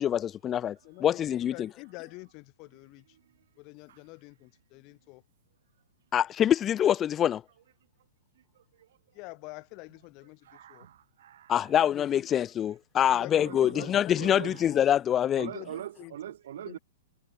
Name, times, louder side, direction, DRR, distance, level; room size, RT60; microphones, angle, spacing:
voice 1, 0.0-1.7 6.1-7.4 11.5-15.5, left 10 dB, 20° left, 0.5 m, -25 dB
voice 2, 0.8-3.1 3.6-5.2 9.1-10.9 11.7-12.3 13.1-14.9 15.5-16.2 16.6-16.8, left 28 dB, 35° left, 3.6 m, -46 dB
voice 3, 10.4-11.5 13.4-14.6 15.4-16.8, right 11 dB, 65° right, 0.5 m, -42 dB
hypercardioid pair, 145°, 0 cm